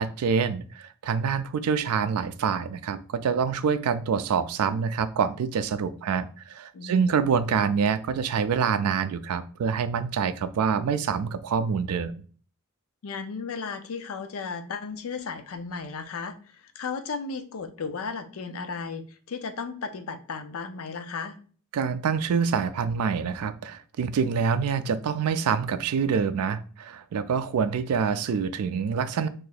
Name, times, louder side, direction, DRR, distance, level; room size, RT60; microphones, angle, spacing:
voice 1, 0.0-12.1 21.7-29.3, right 6 dB, 80° right, 12 dB, 0.4 m, -26 dB
voice 2, 6.7-7.2 13.0-21.4, left 5 dB, 65° left, 9 dB, 0.5 m, -35 dB
2.7 x 2.5 x 3.9 m, 0.41 s
head